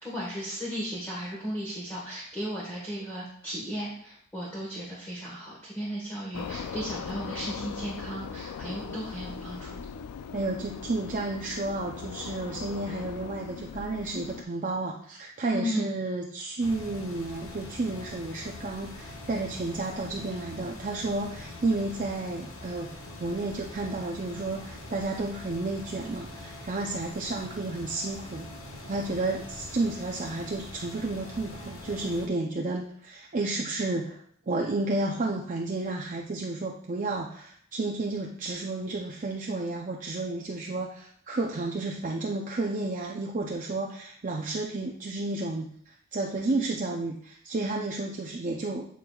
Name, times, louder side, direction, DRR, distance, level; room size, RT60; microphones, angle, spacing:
voice 1, 0.0-9.8 15.5-15.9, equal, 10° left, -6 dB, 1.3 m, -35 dB
sound 1, 6.3-14.4, left 6 dB, 85° left, 0.4 m, -39 dB
voice 2, 10.3-22.9 23.2-28.4 28.9-48.9, right 2 dB, 35° right, 0 dB, 0.5 m, -32 dB
sound 2, 16.6-32.3, left 2 dB, 70° left, 1.0 m, -43 dB
8.7 x 4.6 x 2.3 m, 0.64 s
head